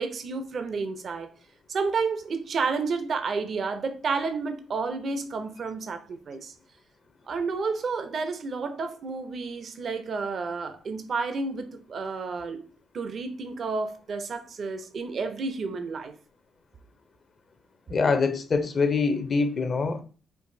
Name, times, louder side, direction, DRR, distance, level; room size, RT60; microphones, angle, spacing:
voice 1, 0.0-1.3 1.7-6.5 7.3-12.6 12.9-16.1, right 4 dB, 50° right, 0.5 m, -31 dB
voice 2, 17.9-20.0, left 4 dB, 40° left, 0.6 m, -24 dB
4.6 x 2.6 x 2.6 m
cardioid pair, 90°, 0 cm